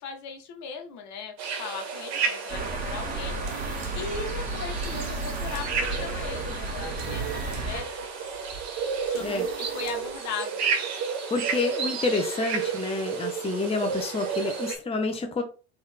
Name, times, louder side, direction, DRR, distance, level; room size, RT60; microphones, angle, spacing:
voice 1, 0.0-1.3 1.6-7.9 9.0-10.5, left 5 dB, 55° left, 1.4 m, -38 dB
sound 1, 1.4-14.8, right 6 dB, 50° right, 1.6 m, -32 dB
sound 2, 2.5-7.8, right 2 dB, 25° right, 1.6 m, -33 dB
Soldering workstation, 3.2-10.2, right 4 dB, 75° right, 1.4 m, -45 dB
voice 2, 11.3-15.4, left 3 dB, 15° left, 0.9 m, -28 dB
4.3 x 3.4 x 3.6 m
hypercardioid pair, 80°, 34 cm